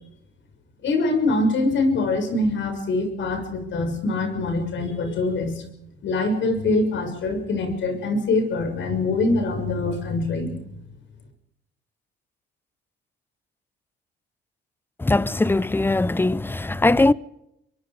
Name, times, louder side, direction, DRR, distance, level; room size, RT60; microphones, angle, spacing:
voice 1, 0.8-5.6 6.0-10.5, left 2 dB, 70° left, 6.4 m, -24 dB
voice 2, 15.0-17.1, left 2 dB, 10° left, 0.7 m, -20 dB
24.5 x 23.0 x 5.0 m
cardioid pair, 90°, 20 cm